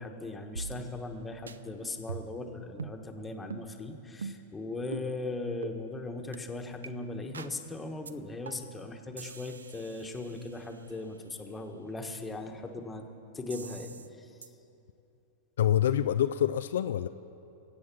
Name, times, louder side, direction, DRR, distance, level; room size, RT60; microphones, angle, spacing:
voice 1, 0.0-13.1 13.3-14.5, left 2 dB, 10° left, 3 dB, 1.5 m, -39 dB
sound 1, 0.6-1.2 1.5-1.6 2.1-2.4 2.8-3.0 3.5-3.7 4.2-4.5 4.9-5.1 5.6-5.8 6.3-6.4 6.8-6.9 7.3-7.6 8.1-8.2 8.5-8.8 9.2-11.0 13.5-14.1 14.4-14.5, right 5 dB, 80° right, 0.5 m, -42 dB
voice 2, 15.6-17.1, left 10 dB, 70° left, 10 dB, 0.4 m, -26 dB
22.5 x 8.4 x 6.1 m, 2.9 s
hypercardioid pair, 100°, 0 cm